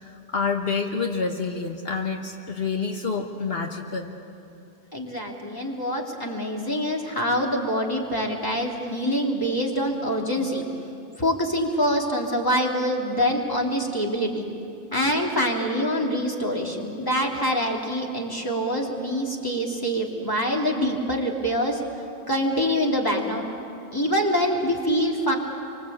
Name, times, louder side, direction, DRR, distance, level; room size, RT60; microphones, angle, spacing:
voice 1, 0.0-4.1, left 4 dB, 70° left, 2 dB, 1.6 m, -28 dB
voice 2, 4.9-10.6 11.2-14.4 14.9-21.8 22.3-23.5 23.9-25.3, equal, 20° left, -1 dB, 3.1 m, -25 dB
28.0 x 24.5 x 8.6 m, 2.7 s
omnidirectional pair, 1.0 m